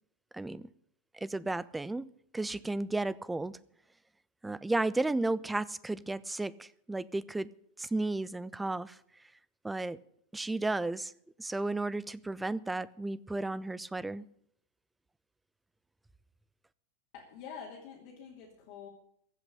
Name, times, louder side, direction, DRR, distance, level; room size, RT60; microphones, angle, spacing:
voice 1, 0.3-0.7 1.1-2.1 2.3-3.6 4.4-7.5 7.8-9.0 9.6-10.0 10.3-11.1 11.4-14.3, right 2 dB, 5° right, 0.5 m, -33 dB
voice 2, 17.1-18.9, left 7 dB, 45° left, 2.9 m, -47 dB
15.5 x 6.0 x 9.9 m
figure-of-eight pair, 90°, 0 cm